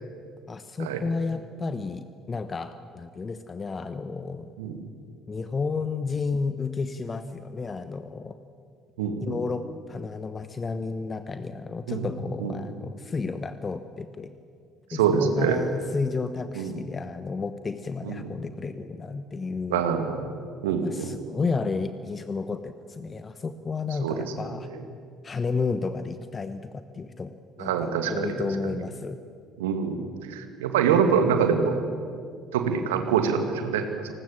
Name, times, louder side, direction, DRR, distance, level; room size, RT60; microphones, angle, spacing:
voice 1, 0.5-4.5 5.3-8.4 9.2-14.3 14.9-19.8 20.7-24.7 25.2-29.2, left 4 dB, 30° left, 11 dB, 1.1 m, -32 dB
voice 2, 9.0-9.4 11.9-12.1 12.4-12.6 14.9-15.7 16.5-16.8 18.0-18.3 19.7-20.2 20.6-21.2 24.0-24.8 27.6-28.7 29.6-31.8 32.5-34.2, right 6 dB, 70° right, 7 dB, 2.2 m, -25 dB
29.5 x 19.5 x 7.6 m, 2.3 s
figure-of-eight pair, 55°, 0 cm